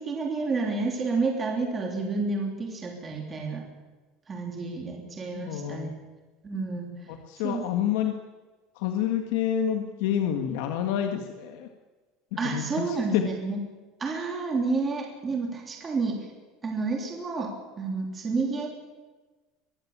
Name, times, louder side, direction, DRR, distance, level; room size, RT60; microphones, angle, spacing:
voice 1, 0.0-3.7 4.3-5.9 6.4-6.9 7.4-7.6 12.4-13.6 14.0-16.2 16.6-18.7, right 3 dB, 15° right, 1 dB, 3.2 m, -30 dB
voice 2, 5.4-6.0 7.1-8.1 8.8-11.7 12.4-13.2, left 10 dB, 70° left, 5 dB, 1.7 m, -28 dB
23.5 x 15.0 x 8.7 m, 1.3 s
cardioid pair, 175°, 0 cm